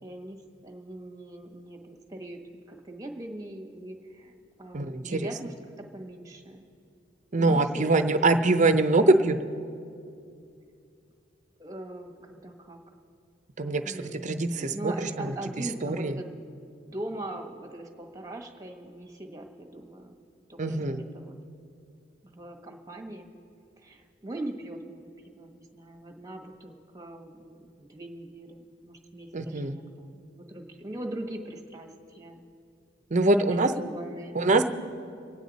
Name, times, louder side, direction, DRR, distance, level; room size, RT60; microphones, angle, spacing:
voice 1, 0.0-2.4 2.7-4.3 4.6-6.7 7.4-8.5 11.6-12.8 13.8-16.5 16.8-20.2 20.5-21.3 22.2-23.3 23.8-32.4 33.4-34.4, right 1 dB, 20° right, 4 dB, 1.3 m, -41 dB
voice 2, 4.7-5.3 7.3-9.4 13.6-14.0 14.2-15.3 15.8-16.2 20.6-21.0 29.3-29.8 33.1-33.7 34.3-34.6, right 2 dB, 40° right, 9 dB, 0.7 m, -23 dB
25.0 x 9.2 x 4.1 m, 2.5 s
head